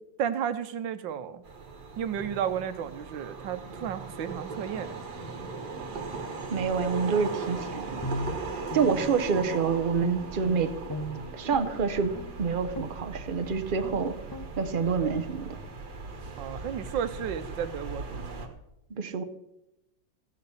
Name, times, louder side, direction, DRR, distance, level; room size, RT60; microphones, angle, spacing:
voice 1, 0.2-1.4 2.0-5.0 16.4-18.5, right 8 dB, 90° right, 11 dB, 1.5 m, -33 dB
sound 1, 1.4-18.5, right 3 dB, 60° right, 2.1 m, -39 dB
voice 2, 6.5-8.0 8.7-10.7 11.3-12.1 12.4-14.2 14.6-15.5 18.9-19.2, right 5 dB, 40° right, 9 dB, 0.7 m, -27 dB
Guitar, 8.0-9.7 10.0-11.7 12.1-12.3 12.7-13.0 13.4-13.5 13.8-14.0 14.3-14.5, right 1 dB, 15° left, 1.1 m, -37 dB
16.0 x 6.6 x 7.1 m, 0.90 s
omnidirectional pair, 2.0 m